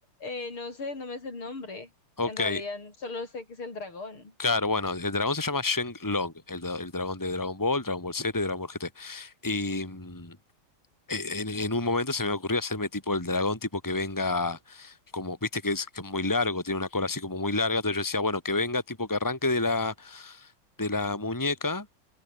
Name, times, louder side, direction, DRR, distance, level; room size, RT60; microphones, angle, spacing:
voice 1, 0.2-1.9 2.2-4.3, left 3 dB, 75° left, 6.4 m, -37 dB
voice 2, 2.2-2.6 4.4-10.4 11.1-20.5 20.8-21.9, left 3 dB, 10° left, 3.0 m, -29 dB
open air
omnidirectional pair, 2.4 m